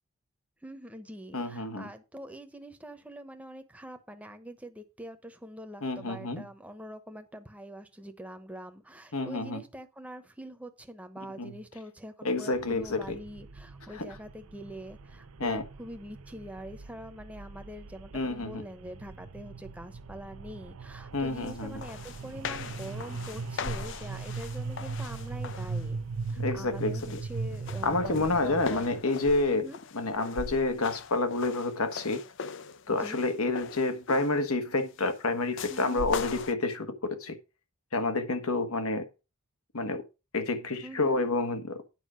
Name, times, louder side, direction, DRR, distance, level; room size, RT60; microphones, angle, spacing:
voice 1, 0.6-26.0 26.3-28.9 29.5-29.8 32.9-33.2 35.7-36.1 40.8-41.3, equal, 5° right, 0.9 m, -44 dB
voice 2, 1.3-1.9 5.8-6.4 9.1-9.6 11.4-11.6 12.2-13.2 13.9-14.1 15.4-15.6 18.1-18.6 21.1-21.8 26.4-27.2 27.8-29.6 29.9-32.2 32.9-36.9 37.2-37.3 37.9-39.0 39.7-40.0 40.3-41.8, left 2 dB, 75° left, 1.4 m, -29 dB
sound 1, 12.5-29.0, right 4 dB, 75° right, 0.6 m, -39 dB
sound 2, 21.5-21.6 21.8-25.9 26.3-26.6 27.0-34.5 35.6-36.5, left 5 dB, 55° left, 0.5 m, -40 dB
9.4 x 5.0 x 6.2 m
head